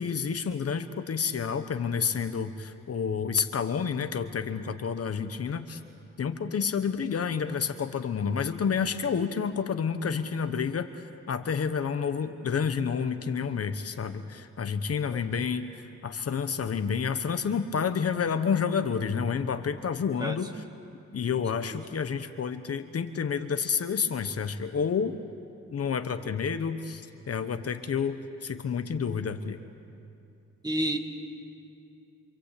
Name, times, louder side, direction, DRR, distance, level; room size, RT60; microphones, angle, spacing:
voice 1, 0.0-5.8 6.2-20.6 21.1-25.2 25.7-29.6, left 6 dB, 55° left, 9 dB, 1.0 m, -29 dB
voice 2, 20.2-20.6 30.6-31.0, right 1 dB, 15° right, 4 dB, 2.0 m, -30 dB
26.5 x 26.5 x 8.4 m, 2.6 s
wide cardioid pair, 155°, 29 cm